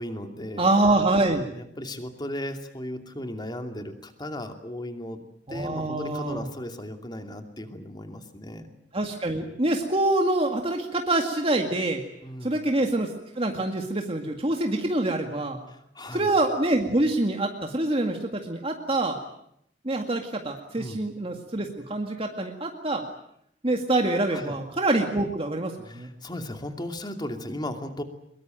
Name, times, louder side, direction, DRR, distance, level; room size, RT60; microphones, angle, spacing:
voice 1, 0.0-0.7 1.5-5.2 5.5-8.7 12.2-12.6 15.7-16.3 20.8-21.0 24.3-24.6 25.8-28.0, left 1 dB, 25° left, 6 dB, 2.7 m, -36 dB
voice 2, 0.6-1.4 5.5-6.4 8.9-12.0 12.4-15.6 16.1-19.2 19.8-23.0 23.6-26.1, right 2 dB, 30° right, 3 dB, 2.1 m, -25 dB
23.5 x 22.5 x 9.1 m, 0.74 s
head